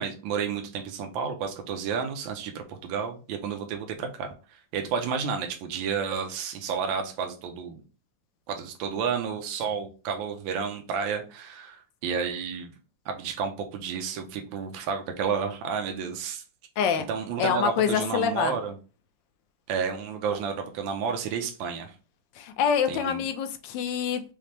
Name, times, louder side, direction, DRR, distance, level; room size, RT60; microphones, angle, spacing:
voice 1, 0.0-7.8 8.5-12.7 13.1-16.4 17.1-18.7 19.7-21.9 22.9-23.2, right 6 dB, 75° right, 1.4 m, -31 dB
voice 2, 16.8-17.1 17.4-18.6 22.4-24.2, left 7 dB, 75° left, 1.2 m, -26 dB
5.6 x 2.0 x 3.2 m
omnidirectional pair, 2.2 m